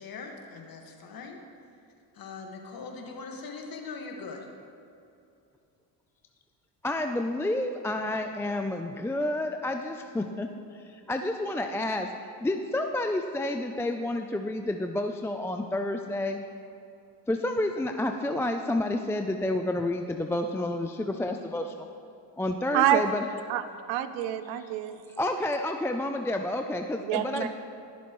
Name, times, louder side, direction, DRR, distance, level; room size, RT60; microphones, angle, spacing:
voice 1, 0.0-1.4 2.1-4.5, left 4 dB, 50° left, 2 dB, 1.7 m, -41 dB
voice 2, 6.8-10.5 10.7-12.1 12.4-16.4 17.3-21.9 22.4-23.2 25.2-27.5, left 1 dB, 5° left, 5 dB, 0.3 m, -30 dB
voice 3, 23.9-25.0 27.0-27.5, right 12 dB, 80° right, 11 dB, 0.8 m, -26 dB
20.5 x 7.0 x 3.1 m, 2.7 s
supercardioid pair, 90°, 45 cm